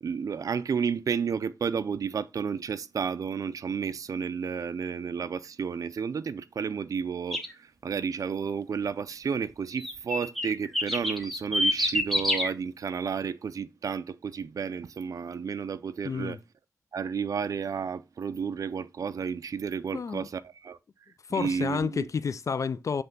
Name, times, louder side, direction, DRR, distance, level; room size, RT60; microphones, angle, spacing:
voice 1, 0.0-16.4 16.9-20.8 21.3-22.1, right 6 dB, 75° right, 0.4 m, -32 dB
sound 1, 7.3-7.5 9.8-12.5, left 1 dB, ahead, 1.6 m, -27 dB
voice 2, 16.0-16.4 19.9-20.3 21.3-23.0, left 5 dB, 60° left, 0.4 m, -30 dB
7.9 x 3.3 x 5.3 m
wide cardioid pair, 80°, 6 cm